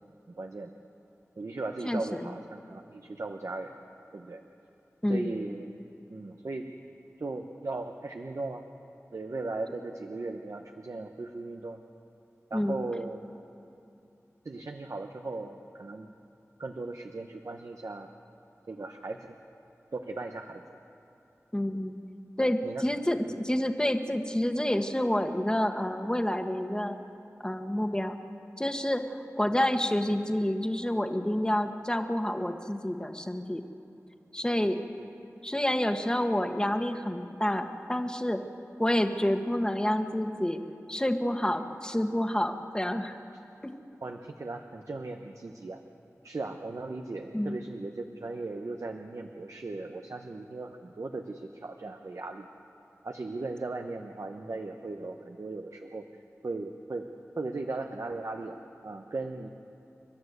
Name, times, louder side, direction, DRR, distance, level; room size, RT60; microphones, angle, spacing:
voice 1, 0.3-0.7 1.4-3.7 4.1-4.4 5.1-5.7 6.1-6.7 7.2-8.7 9.1-11.8 12.5-13.2 14.4-16.1 16.6-18.1 18.7-19.3 19.9-20.6 22.6-22.8 44.0-45.8 46.2-52.5 53.0-56.1 56.4-57.1 57.4-59.5, right 3 dB, 75° right, 4 dB, 1.0 m, -37 dB
voice 2, 1.8-2.3 5.0-5.3 12.5-12.8 21.5-21.9 22.4-27.0 27.4-28.2 28.6-33.6 34.3-34.8 35.4-38.4 38.8-40.6 40.9-43.2 43.6-43.7 47.3-47.6, left 1 dB, 15° left, 6 dB, 1.4 m, -28 dB
30.0 x 12.5 x 8.1 m, 2.7 s
wide cardioid pair, 65°, 5 cm